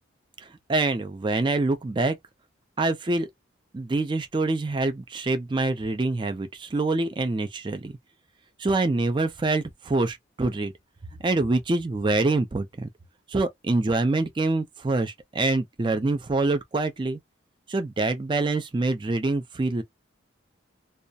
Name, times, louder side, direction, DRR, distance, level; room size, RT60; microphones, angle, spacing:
voice 1, 0.4-2.2 2.8-3.3 3.7-8.0 8.6-10.7 11.2-12.9 13.3-17.2 17.7-19.8, right 2 dB, 25° right, 0.3 m, -25 dB
2.3 x 2.0 x 2.6 m
head